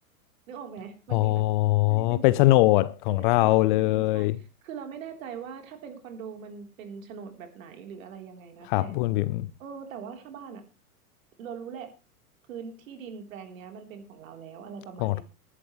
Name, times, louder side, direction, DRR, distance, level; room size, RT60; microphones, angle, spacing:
voice 1, 0.5-1.4 1.9-2.7 3.1-4.3 4.6-9.0 9.6-10.6 11.4-11.9 12.5-15.2, right 6 dB, 60° right, 3.6 m, -42 dB
voice 2, 1.1-4.4 8.6-9.5 15.0-15.2, left 17 dB, 35° left, 0.6 m, -22 dB
19.5 x 11.0 x 3.1 m
figure-of-eight pair, 105°, 46 cm